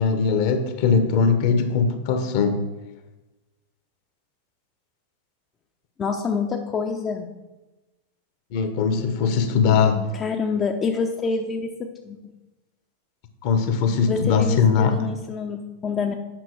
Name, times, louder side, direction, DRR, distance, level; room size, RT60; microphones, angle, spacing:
voice 1, 0.0-2.6 8.5-10.0 13.4-15.0, left 5 dB, 45° left, 8 dB, 1.1 m, -20 dB
voice 2, 6.0-7.3 10.1-12.2 14.1-16.2, left 5 dB, 25° left, 3 dB, 0.7 m, -27 dB
9.1 x 6.0 x 4.6 m, 1.1 s
figure-of-eight pair, 90°, 0 cm